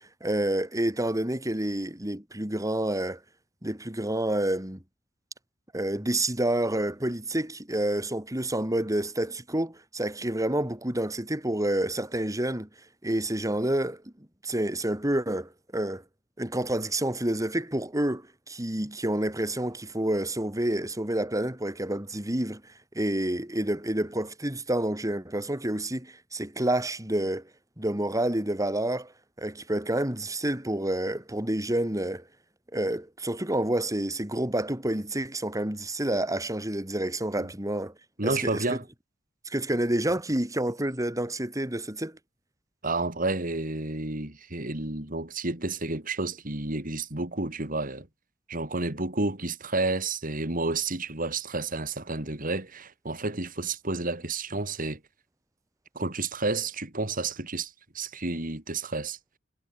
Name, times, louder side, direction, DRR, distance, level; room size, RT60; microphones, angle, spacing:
voice 1, 0.2-3.2 3.6-4.8 5.7-12.7 13.0-14.0 14.4-16.0 16.4-22.6 22.9-27.5 27.8-29.1 29.4-32.2 32.7-37.9 38.2-38.6 39.4-42.2, right 1 dB, 20° right, 3.1 m, -28 dB
voice 2, 38.2-38.8 42.8-48.1 48.5-55.0 56.0-59.2, right 3 dB, 45° right, 3.5 m, -30 dB
head